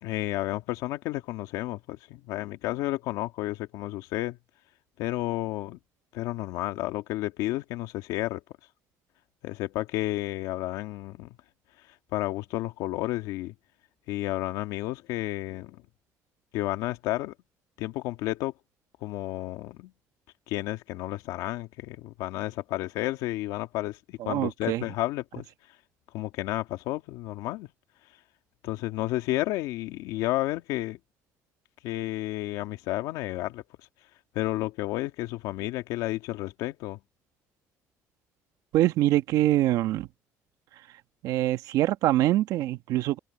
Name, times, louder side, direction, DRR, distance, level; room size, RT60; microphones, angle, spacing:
voice 1, 0.0-4.4 5.0-5.8 6.1-8.4 9.4-11.4 12.1-13.5 14.1-15.8 16.5-17.3 17.8-18.5 19.0-19.9 20.5-25.4 26.1-27.7 28.6-31.0 31.8-33.6 34.3-37.0, left 17 dB, 85° left, 1.8 m, -31 dB
voice 2, 24.2-24.8 38.7-40.1 41.2-43.2, right 14 dB, 75° right, 1.3 m, -24 dB
cardioid pair, 115°, 6 cm